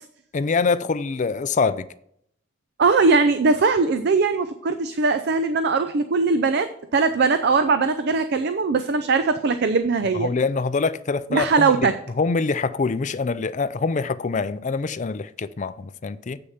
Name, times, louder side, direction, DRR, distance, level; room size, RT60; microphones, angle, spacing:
voice 1, 0.3-1.9 10.1-11.9 12.2-16.4, left 4 dB, 40° left, 0.4 m, -24 dB
voice 2, 2.8-10.3 11.3-11.9, right 4 dB, 60° right, 0.5 m, -20 dB
7.8 x 6.5 x 5.8 m
head